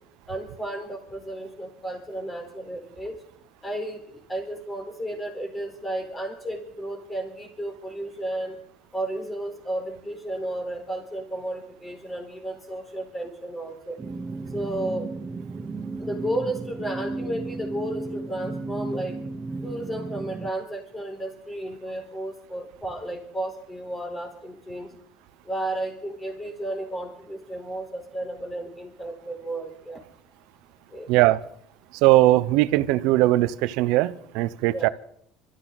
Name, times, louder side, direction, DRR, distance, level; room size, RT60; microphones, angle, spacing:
voice 1, 0.3-3.2 3.6-8.6 8.9-14.0 14.5-15.1 16.0-19.2 19.6-24.9 25.4-30.0 30.9-31.1 34.7-34.9, right 1 dB, 10° left, 3 dB, 4.4 m, -33 dB
sound 1, 14.0-20.5, right 3 dB, 20° right, 0.8 m, -34 dB
voice 2, 31.1-31.4 32.0-34.9, right 17 dB, 70° right, 16 dB, 0.8 m, -20 dB
24.5 x 14.0 x 4.1 m, 0.66 s
cardioid pair, 125°, 0 cm